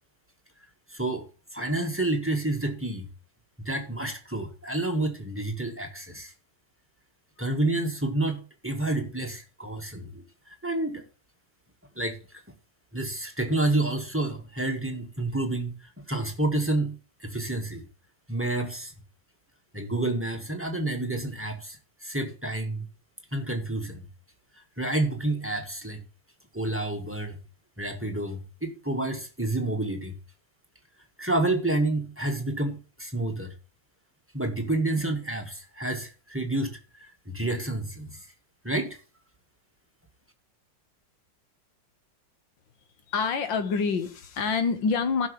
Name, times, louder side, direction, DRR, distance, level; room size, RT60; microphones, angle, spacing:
voice 1, 0.9-1.3 1.5-3.1 3.6-6.3 7.4-11.0 11.9-12.4 12.9-16.9 17.2-17.9 18.3-18.9 19.7-22.9 23.3-24.1 24.8-26.0 26.5-27.4 27.8-30.2 31.2-33.5 34.3-38.3 38.6-39.0, right 2 dB, 5° right, 1.6 m, -29 dB
voice 2, 43.1-45.3, left 5 dB, 90° left, 2.0 m, -26 dB
15.5 x 6.4 x 3.2 m
omnidirectional pair, 2.0 m